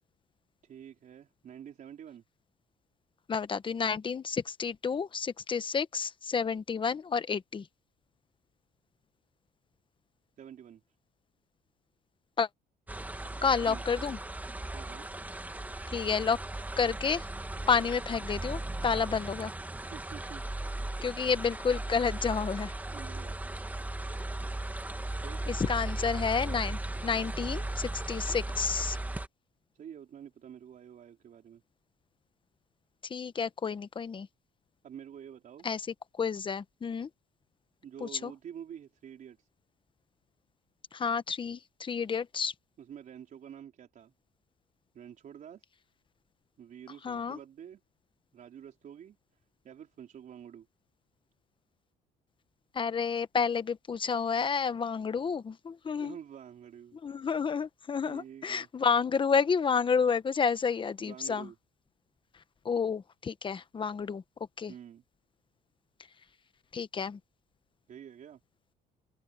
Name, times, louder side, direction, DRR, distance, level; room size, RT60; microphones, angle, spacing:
voice 1, 0.6-2.2 10.4-10.8 13.6-13.8 14.7-15.1 19.9-20.4 22.9-23.4 25.2-25.4 29.7-31.6 34.8-35.7 37.8-39.5 42.8-44.1 44.9-45.6 46.6-47.8 48.3-49.2 49.6-50.7 56.0-57.0 58.0-58.7 61.0-61.6 64.7-65.0 67.9-68.4, right 9 dB, 50° right, 4.2 m, -48 dB
voice 2, 3.3-7.7 12.4-12.5 13.4-14.2 15.9-16.4 16.8-17.3 17.7-19.5 21.0-22.7 25.5-29.0 33.1-34.3 35.6-35.8 36.2-37.1 38.0-38.3 40.9-42.5 47.0-47.4 52.7-56.2 57.0-61.5 62.6-64.2 64.6-64.7 66.7-67.2, left 6 dB, 30° left, 1.2 m, -30 dB
sound 1, 12.9-29.3, right 2 dB, 10° right, 1.9 m, -37 dB
open air
cardioid pair, 110°, 17 cm